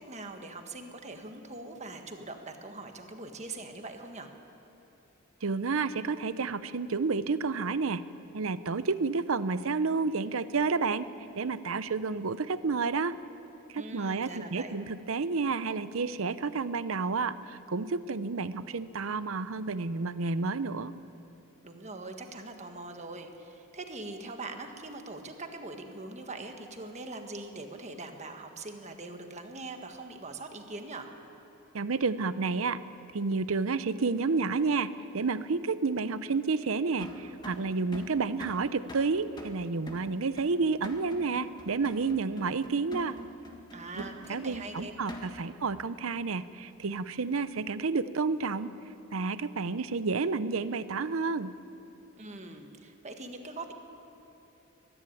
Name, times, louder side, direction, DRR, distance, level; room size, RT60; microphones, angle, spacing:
voice 1, 0.0-4.3 13.7-14.8 21.6-31.1 43.7-44.9 52.2-53.7, right 2 dB, 30° right, 5 dB, 1.5 m, -42 dB
voice 2, 5.4-8.0 8.3-11.1 11.4-13.1 13.7-20.9 31.7-32.8 33.1-43.1 44.3-48.7 49.1-51.5, right 4 dB, 70° right, 14 dB, 0.7 m, -30 dB
sound 1, 37.0-45.6, equal, 20° left, 1.7 m, -45 dB
24.0 x 11.0 x 9.9 m, 2.9 s
head